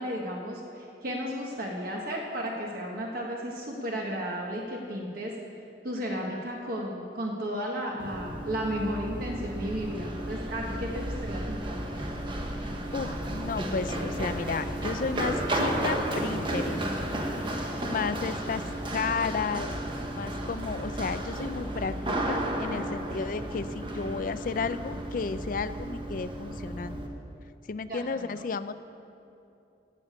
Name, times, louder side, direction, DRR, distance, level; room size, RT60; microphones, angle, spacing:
voice 1, 0.0-5.3 5.8-11.8 27.9-28.4, equal, 50° right, -1 dB, 1.2 m, -34 dB
Run, 8.0-27.1, right 1 dB, 25° right, 1.1 m, -33 dB
voice 2, 12.9-16.8 17.8-18.6 18.9-19.7 20.2-22.0 22.3-27.0 27.7-28.7, left 4 dB, 50° left, 13 dB, 0.4 m, -33 dB
11.5 x 6.7 x 8.6 m, 2.7 s
head